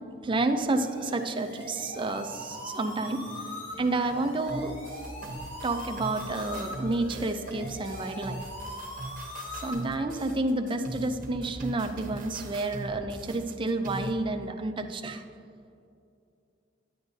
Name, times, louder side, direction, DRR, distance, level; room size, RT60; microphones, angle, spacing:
voice 1, 0.2-3.4 3.8-4.8 5.6-8.5 9.5-15.2, right 2 dB, 25° right, 7 dB, 0.4 m, -30 dB
sound 1, 0.7-9.7, left 1 dB, 80° left, 1.9 m, -41 dB
sound 2, 4.5-14.2, right 1 dB, 45° right, 0.9 m, -40 dB
10.5 x 8.0 x 2.7 m, 2.5 s
head